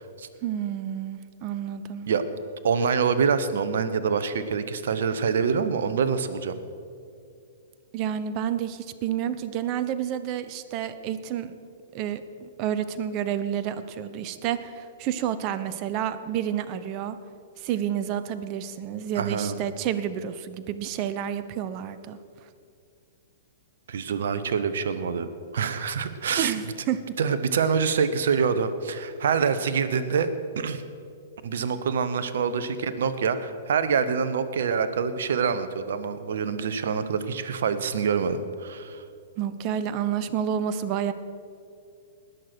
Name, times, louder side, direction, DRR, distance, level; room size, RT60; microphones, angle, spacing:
voice 1, 0.4-2.1 7.9-11.5 11.9-17.2 17.6-22.2 26.4-27.0 39.4-41.1, right 9 dB, 40° right, 13 dB, 0.8 m, -29 dB
voice 2, 2.6-6.6 19.1-19.6 23.9-25.3 25.5-26.5 27.2-30.3 30.6-30.8 31.4-39.0, right 6 dB, 65° right, 12 dB, 0.9 m, -26 dB
19.5 x 6.8 x 6.1 m, 2.4 s
hypercardioid pair, 110°, 0 cm